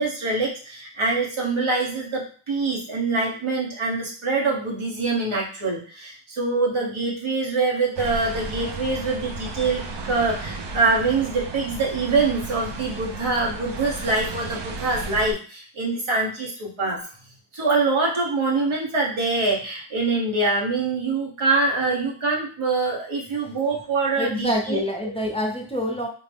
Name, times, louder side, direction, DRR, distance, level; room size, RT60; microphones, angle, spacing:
voice 1, 0.0-17.0 17.5-24.8, right 3 dB, 75° right, -3 dB, 1.3 m, -24 dB
sound 1, 8.0-15.3, right 3 dB, 60° right, 0.6 m, -34 dB
voice 2, 24.2-26.1, equal, 10° left, -1 dB, 0.6 m, -26 dB
3.9 x 2.1 x 3.4 m, 0.41 s
wide cardioid pair, 110°, 49 cm